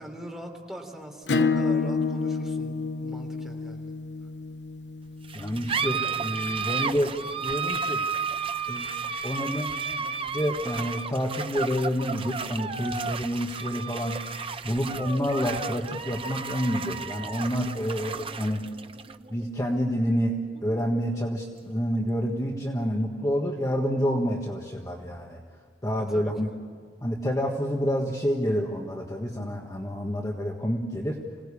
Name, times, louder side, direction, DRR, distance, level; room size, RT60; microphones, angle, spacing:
voice 1, 0.0-3.9 26.1-26.5, equal, 5° right, 0 dB, 3.5 m, -42 dB
Acoustic guitar / Strum, 1.3-6.5, left 4 dB, 80° left, 0.8 m, -29 dB
sound 1, 5.2-22.2, right 5 dB, 30° right, 0.8 m, -33 dB
voice 2, 5.3-7.1 7.4-8.0 8.7-14.1 14.6-18.6 19.3-20.3 20.6-25.4 25.8-26.5 27.0-31.2, equal, 20° left, 0 dB, 1.5 m, -28 dB
26.5 x 18.0 x 8.5 m, 2.1 s
head